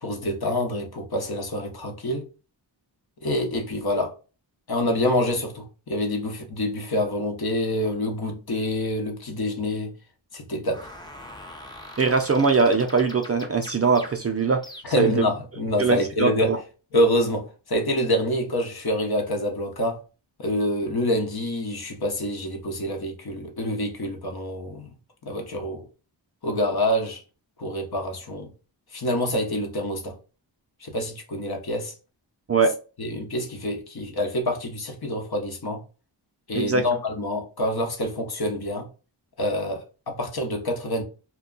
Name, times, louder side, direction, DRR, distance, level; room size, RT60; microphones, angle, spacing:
voice 1, 0.0-2.3 3.2-4.1 4.7-9.9 10.3-10.8 14.8-16.5 16.9-20.0 20.4-24.9 25.3-25.8 26.4-27.2 27.6-28.5 28.9-30.1 30.8-31.9 33.0-35.8 36.5-38.8 39.4-41.0, left 1 dB, 50° left, 0.9 m, -26 dB
sound 1, 10.7-15.2, left 1 dB, 10° left, 0.6 m, -43 dB
voice 2, 12.0-14.6 15.0-15.1 15.8-16.6 32.5-32.7 36.5-36.9, right 4 dB, 35° right, 0.4 m, -21 dB
2.2 x 2.2 x 3.7 m
cardioid pair, 55°, 46 cm